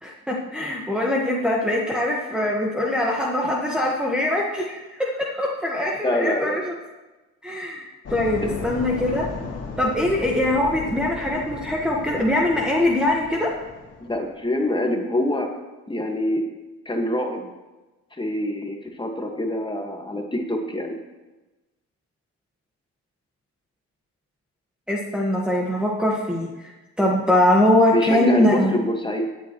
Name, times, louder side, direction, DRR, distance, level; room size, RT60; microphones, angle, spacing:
voice 1, 0.0-6.7 7.4-7.8 8.1-9.3 9.8-13.5 24.9-26.7 27.0-28.8, left 1 dB, 5° right, -3 dB, 1.4 m, -22 dB
voice 2, 6.0-6.6 8.4-8.5 14.0-15.5 15.9-16.5 16.8-17.5 18.2-21.0 27.9-29.2, left 1 dB, 15° left, 3 dB, 1.6 m, -25 dB
sound 1, 8.0-14.4, left 4 dB, 55° left, 2.4 m, -35 dB
16.5 x 9.2 x 3.1 m, 1.1 s
cardioid pair, 90°, 30 cm